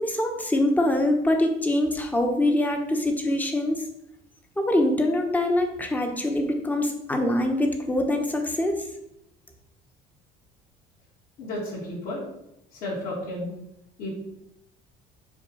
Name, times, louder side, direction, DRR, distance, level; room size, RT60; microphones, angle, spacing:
voice 1, 0.0-3.8 4.6-8.9, left 1 dB, 10° left, 4 dB, 1.1 m, -24 dB
voice 2, 11.4-12.3 12.7-13.5 14.0-14.1, left 1 dB, 55° left, -7 dB, 3.5 m, -32 dB
7.1 x 4.4 x 6.4 m, 0.83 s
cardioid pair, 155°, 17 cm